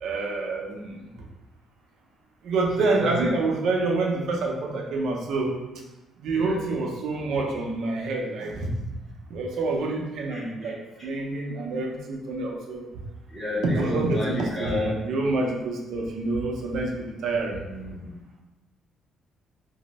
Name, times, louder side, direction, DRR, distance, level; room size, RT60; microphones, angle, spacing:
voice 1, 0.0-1.0 2.4-5.5 6.2-8.7 9.3-10.8 11.0-12.9 13.6-17.6, right 3 dB, 55° right, 0 dB, 0.5 m, -27 dB
voice 2, 2.8-3.3 6.3-6.6 10.3-10.7 13.3-15.0 17.7-18.1, left 1 dB, 15° left, -11 dB, 0.7 m, -31 dB
2.6 x 2.1 x 3.9 m, 1.1 s
cardioid pair, 175°, 0 cm